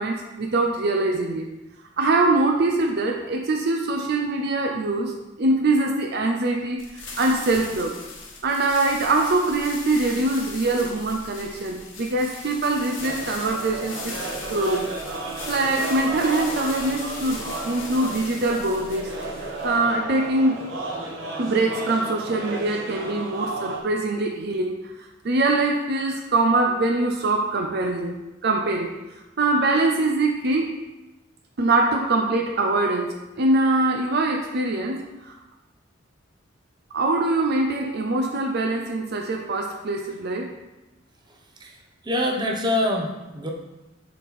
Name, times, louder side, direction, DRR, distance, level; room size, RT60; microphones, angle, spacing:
voice 1, 0.0-1.5 2.0-5.1 5.4-7.9 8.4-14.1 14.5-14.9 15.5-19.1 19.6-20.7 21.4-24.8 25.2-29.0 29.4-30.7 31.6-35.4 36.9-40.5, right 2 dB, 55° right, 2 dB, 0.6 m, -23 dB
sound 1, 6.8-19.9, left 3 dB, 70° left, 1.2 m, -39 dB
sound 2, 13.0-23.8, right 2 dB, 70° right, 1.2 m, -33 dB
voice 2, 41.3-43.5, left 1 dB, 20° right, 0 dB, 0.8 m, -26 dB
6.4 x 4.2 x 4.1 m, 1.0 s
head